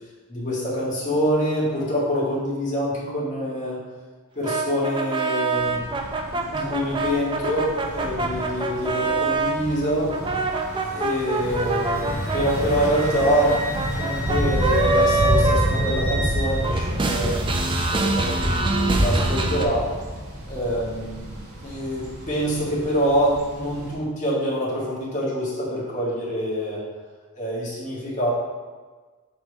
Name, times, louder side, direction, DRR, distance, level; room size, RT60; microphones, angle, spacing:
voice 1, 0.3-3.8 4.3-5.9 6.3-10.1 10.8-13.6 13.9-17.3 17.9-19.9 20.5-21.3 21.6-26.8 27.3-28.3, equal, 35° left, -6 dB, 1.7 m, -25 dB
sound 1, 4.4-9.6 10.1-16.4 16.6-19.6, right 3 dB, 25° right, 0.4 m, -25 dB
Thunder / Bicycle, 5.5-23.9, equal, 70° right, 1.5 m, -29 dB
Wind instrument woodwind instrument, 10.9-16.6, equal, 55° left, 1.6 m, -35 dB
6.4 x 4.4 x 3.4 m, 1.4 s
head